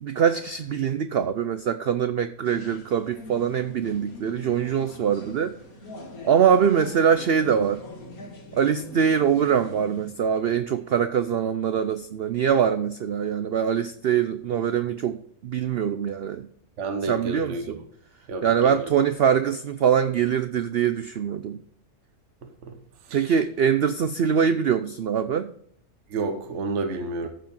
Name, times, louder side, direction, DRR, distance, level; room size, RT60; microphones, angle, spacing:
voice 1, 0.0-5.5 6.2-7.8 8.5-16.5 17.1-17.8 18.4-21.6 23.1-25.5, right 8 dB, 85° right, 11 dB, 0.5 m, -23 dB
sound 1, 2.4-10.1, left 1 dB, 65° left, 2.4 m, -42 dB
voice 2, 16.8-17.8 18.3-18.8 22.4-22.8 23.1-23.3 26.1-27.3, right 3 dB, 50° right, 6 dB, 1.3 m, -30 dB
14.5 x 5.1 x 5.3 m, 0.66 s
omnidirectional pair, 1.7 m